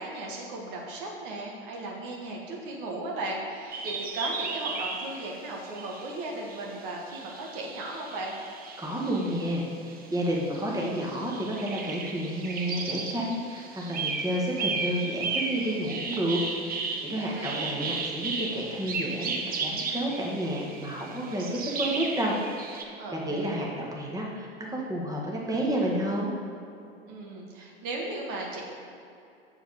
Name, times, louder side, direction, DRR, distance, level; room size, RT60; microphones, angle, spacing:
voice 1, 0.0-8.3 17.1-17.7 23.0-23.6 27.1-28.6, right 2 dB, 55° right, -1 dB, 1.7 m, -36 dB
sound 1, 3.7-9.5 9.9-22.8, right 4 dB, 30° right, 1.1 m, -35 dB
voice 2, 8.8-22.3 22.6-26.3, right 1 dB, 10° right, -3 dB, 1.7 m, -30 dB
7.3 x 7.0 x 5.1 m, 2.6 s
figure-of-eight pair, 80°, 30 cm